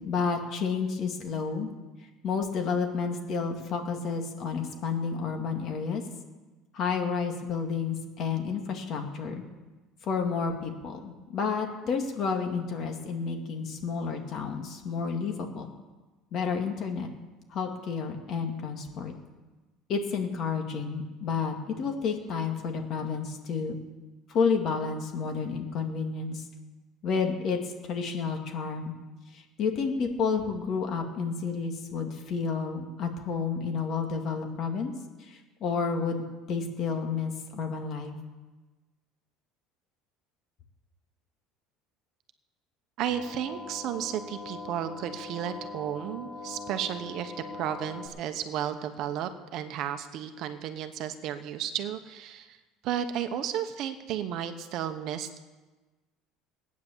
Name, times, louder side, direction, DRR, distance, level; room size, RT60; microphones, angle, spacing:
voice 1, 0.0-1.7 2.2-6.0 6.7-9.4 10.0-15.7 16.3-17.1 17.5-19.1 19.9-23.8 24.3-26.4 27.0-29.0 29.3-34.9 35.3-36.2 36.5-38.2, left 5 dB, 40° left, 3 dB, 2.2 m, -30 dB
voice 2, 43.0-52.6 52.8-55.4, right 9 dB, 50° right, 8 dB, 1.0 m, -33 dB
sound 1, 43.1-48.1, left 3 dB, 90° left, 5.6 m, -42 dB
18.5 x 9.5 x 7.4 m, 1.2 s
cardioid pair, 165°, 0 cm